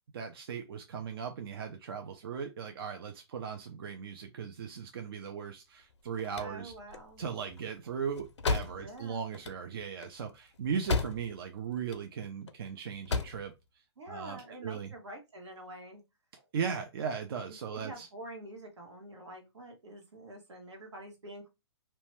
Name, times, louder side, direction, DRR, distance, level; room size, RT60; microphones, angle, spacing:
voice 1, 0.1-6.7 7.2-13.5 14.1-14.9 16.5-18.1, right 6 dB, 55° right, 0.5 m, -38 dB
sound 1, 5.9-11.5 11.8-12.5 12.9-13.5, left 4 dB, 85° left, 0.5 m, -35 dB
voice 2, 6.3-7.2 8.8-9.3 14.0-16.0 16.4-16.5 17.7-21.5, right 1 dB, 80° right, 1.2 m, -47 dB
2.7 x 2.2 x 3.0 m
hypercardioid pair, 145°, 14 cm